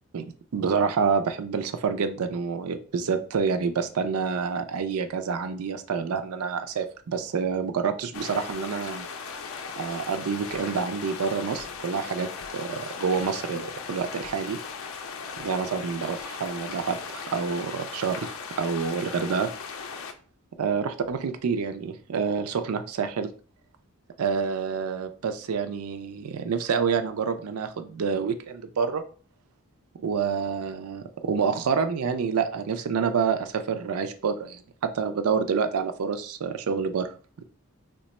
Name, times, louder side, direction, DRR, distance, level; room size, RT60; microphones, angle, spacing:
voice 1, 0.1-9.1 9.8-14.6 15.4-19.5 20.6-23.3 24.2-29.0 30.0-37.1, right 5 dB, 90° right, 9 dB, 0.4 m, -28 dB
sound 1, 8.1-20.1, left 5 dB, 75° left, 0.4 m, -38 dB
2.8 x 2.2 x 4.1 m, 0.40 s
head